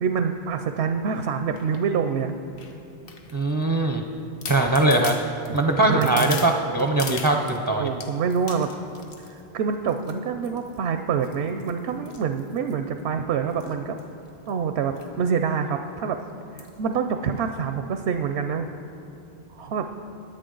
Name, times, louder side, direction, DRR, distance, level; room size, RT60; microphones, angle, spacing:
voice 1, 0.0-2.3 5.9-6.5 7.8-8.7 9.3-14.0 14.5-16.2 16.5-18.7 19.5-19.9, right 6 dB, 85° right, 7 dB, 0.8 m, -26 dB
sound 1, 1.6-1.8 2.6-3.6 4.1-4.2 4.4-7.6 8.0-9.4 9.9-10.2 10.4-10.8 11.2-13.0 13.5-13.7 14.0-14.1 14.3-14.5 15.0-15.1 15.5-15.6 16.6-16.8 17.4-17.5, left 4 dB, 65° left, 1.1 m, -39 dB
voice 2, 3.3-4.0 4.5-5.1 5.5-7.9, right 2 dB, 25° right, 3 dB, 0.5 m, -21 dB
16.5 x 10.0 x 3.9 m, 2.8 s
omnidirectional pair, 1.1 m